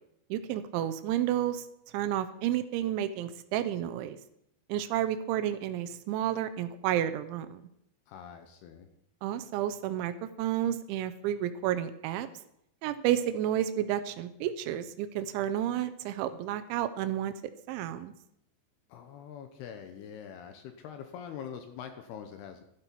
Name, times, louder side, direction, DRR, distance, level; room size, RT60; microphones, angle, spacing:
voice 1, 0.3-1.7 1.9-4.2 4.7-7.6 9.2-12.3 12.8-17.3 17.7-18.1, right 11 dB, 85° right, 12 dB, 3.0 m, -31 dB
voice 2, 8.1-8.9 18.9-22.6, left 8 dB, 80° left, 7 dB, 2.5 m, -44 dB
12.5 x 11.5 x 4.5 m, 0.77 s
omnidirectional pair, 5.3 m